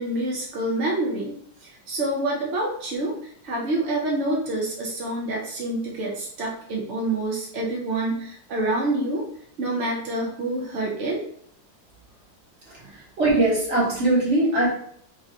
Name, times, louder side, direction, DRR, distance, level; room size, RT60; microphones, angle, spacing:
voice 1, 0.0-1.3 1.6-9.3 9.6-11.2, right 2 dB, 60° right, -3 dB, 0.7 m, -27 dB
voice 2, 12.7-14.7, right 2 dB, 40° right, -5 dB, 1.5 m, -21 dB
3.6 x 2.9 x 3.5 m, 0.65 s
omnidirectional pair, 2.1 m